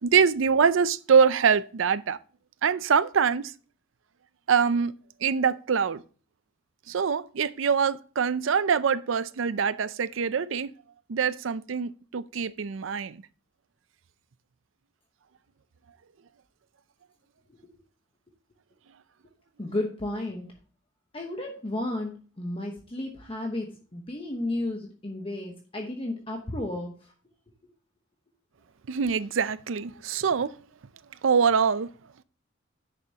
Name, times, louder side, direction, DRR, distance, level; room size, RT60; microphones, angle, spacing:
voice 1, 0.0-2.2 2.6-3.5 4.5-4.9 5.2-6.0 6.9-10.7 11.1-13.2 28.9-30.5 31.2-31.9, right 6 dB, 80° right, 0.5 m, -24 dB
voice 2, 19.6-20.5 21.1-27.1, left 1 dB, 30° left, 1.1 m, -33 dB
9.8 x 6.8 x 2.9 m
head